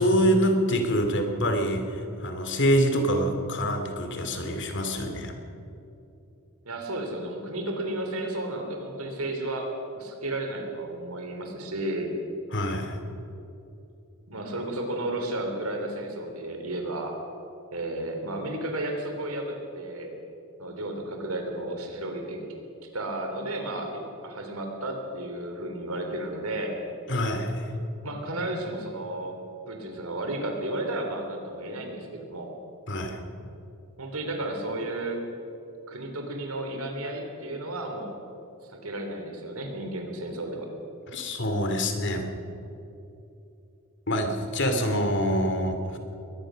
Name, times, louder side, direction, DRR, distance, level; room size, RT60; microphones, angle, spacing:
voice 1, 0.0-5.3 12.5-13.0 27.1-27.7 32.9-33.2 41.1-42.3 44.1-46.0, equal, 55° left, 6 dB, 2.6 m, -25 dB
voice 2, 6.6-9.7 9.9-12.1 14.3-17.2 17.7-20.1 20.6-22.4 22.9-26.8 28.0-29.4 29.7-32.5 34.0-35.2 35.9-38.2 38.7-40.7, right 1 dB, 85° right, 3 dB, 3.7 m, -33 dB
22.5 x 19.0 x 6.4 m, 2.9 s
head